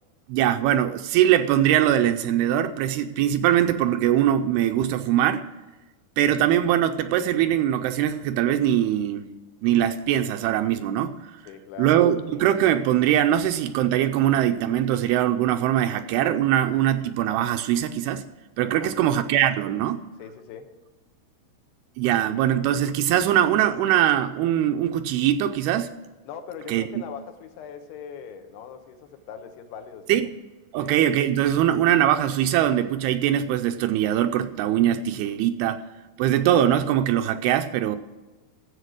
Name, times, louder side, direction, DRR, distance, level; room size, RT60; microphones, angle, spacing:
voice 1, 0.3-5.4 6.2-9.3 9.6-11.1 11.8-18.3 18.6-20.0 22.0-25.9 26.7-26.9 30.1-30.3 30.7-35.8 36.2-38.0, right 11 dB, 80° right, 8 dB, 2.4 m, -22 dB
voice 2, 11.5-12.0 18.6-19.2 20.2-20.7 26.3-30.3 30.8-30.9, left 7 dB, 80° left, 7 dB, 3.0 m, -41 dB
13.0 x 7.9 x 6.3 m, 1.2 s
omnidirectional pair, 4.8 m